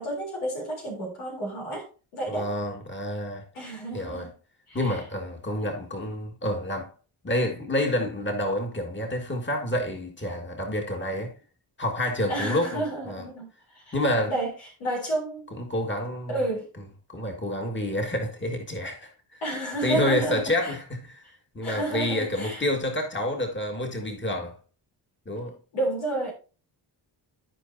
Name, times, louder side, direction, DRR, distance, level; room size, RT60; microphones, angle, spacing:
voice 1, 0.0-1.9 2.1-2.5 3.5-4.3 4.7-5.0 5.6-5.7 12.3-13.5 13.7-14.0 14.3-14.5 14.8-15.4 16.3-16.7 19.4-20.7 21.6-22.6 25.7-26.3, right 2 dB, 85° left, 3.8 m, -30 dB
voice 2, 2.3-3.4 3.9-4.3 4.7-6.9 7.2-11.3 11.8-13.2 13.9-14.3 15.6-16.3 17.1-19.4 19.8-21.2 21.5-24.6 25.3-25.6, left 1 dB, 20° left, 2.2 m, -28 dB
13.5 x 4.7 x 2.8 m
supercardioid pair, 45°, 49 cm